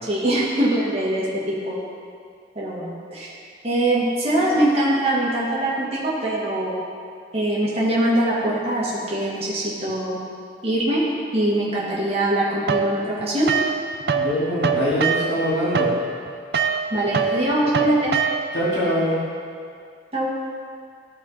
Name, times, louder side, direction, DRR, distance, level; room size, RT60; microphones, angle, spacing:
voice 1, 0.1-1.8 2.6-3.3 3.6-6.8 7.3-10.2 10.6-11.0 11.3-13.5 16.9-18.2 20.1-20.3, right 1 dB, 35° right, -7 dB, 1.8 m, -22 dB
sound 1, 12.7-14.3 14.6-18.7, right 5 dB, 60° right, 0.5 m, -23 dB
voice 2, 14.1-15.9 18.5-19.2, equal, 70° left, -8 dB, 2.5 m, -23 dB
14.0 x 4.9 x 4.3 m, 2.3 s
head